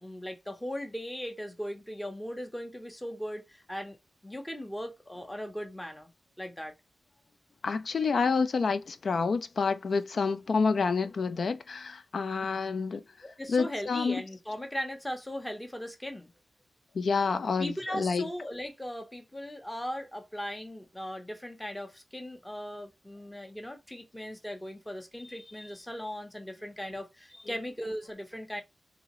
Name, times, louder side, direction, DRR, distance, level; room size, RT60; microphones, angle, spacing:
voice 1, 0.0-4.0 4.2-6.1 6.4-6.7 13.2-16.3 17.6-28.6, equal, 10° left, 0.7 m, -38 dB
voice 2, 7.6-13.0 13.5-14.2 16.9-18.3, left 4 dB, 60° left, 0.4 m, -28 dB
3.8 x 2.9 x 3.0 m
wide cardioid pair, 165°, 0 cm